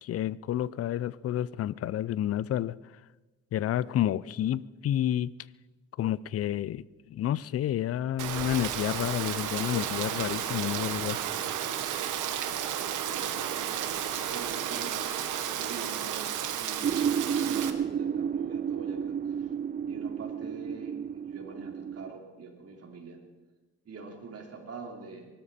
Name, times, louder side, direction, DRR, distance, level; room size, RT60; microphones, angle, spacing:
voice 1, 0.0-2.8 3.5-5.3 6.0-11.2, left 11 dB, 50° left, 20 dB, 0.5 m, -30 dB
Rain, 8.2-17.7, right 10 dB, 85° right, 1.4 m, -33 dB
voice 2, 12.5-15.0 15.5-19.5 19.9-23.2 23.9-25.3, right 4 dB, 50° right, 1 dB, 3.7 m, -45 dB
sound 1, 16.8-22.1, right 8 dB, 30° right, 0.4 m, -31 dB
23.5 x 12.5 x 4.3 m, 1.2 s
cardioid pair, 90°, 30 cm